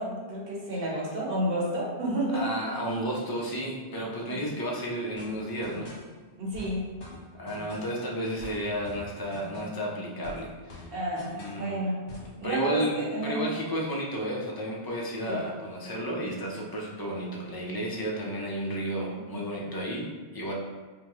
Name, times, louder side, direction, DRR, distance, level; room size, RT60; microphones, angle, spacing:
voice 1, 0.0-2.5 6.4-6.8 10.9-12.0 12.4-13.4 15.3-15.4 19.1-19.2, right 1 dB, 60° right, -5 dB, 1.2 m, -30 dB
voice 2, 2.3-6.0 7.3-10.9 11.3-11.8 12.4-20.5, equal, 30° left, -2 dB, 0.5 m, -32 dB
sound 1, 5.2-6.1 6.5-8.0 8.4-9.9 10.2-11.7 12.1-12.4, left 1 dB, 85° left, 1.3 m, -45 dB
5.2 x 2.2 x 3.1 m, 1.4 s
omnidirectional pair, 1.1 m